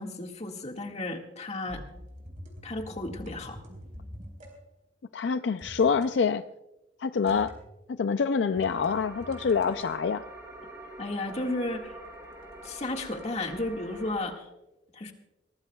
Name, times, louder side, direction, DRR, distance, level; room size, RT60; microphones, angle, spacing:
voice 1, 0.0-1.8 2.6-3.6 11.0-12.0 12.6-14.5 14.9-15.1, left 2 dB, 35° left, 3 dB, 1.8 m, -33 dB
sound 1, 1.7-4.5 5.6-6.1 7.3-7.7 8.5-9.9 11.3-13.2 13.5-13.6, equal, 45° right, 4.2 m, -45 dB
voice 2, 5.1-6.4 7.0-7.5 7.9-10.2, left 5 dB, 65° left, 10 dB, 0.4 m, -26 dB
sound 2, 8.6-14.3, right 1 dB, 20° right, 4.3 m, -45 dB
22.5 x 18.5 x 2.3 m, 0.95 s
head